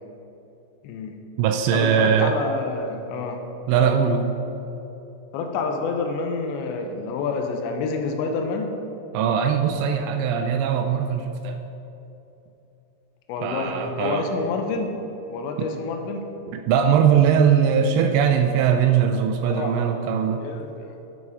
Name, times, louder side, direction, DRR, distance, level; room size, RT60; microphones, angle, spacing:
voice 1, 0.8-1.2 1.7-3.4 5.3-8.7 13.3-15.0 15.3-16.3 19.4-20.1 20.4-20.9, left 4 dB, 80° left, 4 dB, 2.9 m, -28 dB
voice 2, 1.4-2.4 3.7-4.3 9.1-11.6 13.4-14.3 15.6-15.7 16.5-20.4, right 7 dB, 85° right, 5 dB, 2.6 m, -20 dB
9.4 x 5.5 x 4.8 m, 2.9 s
omnidirectional pair, 5.2 m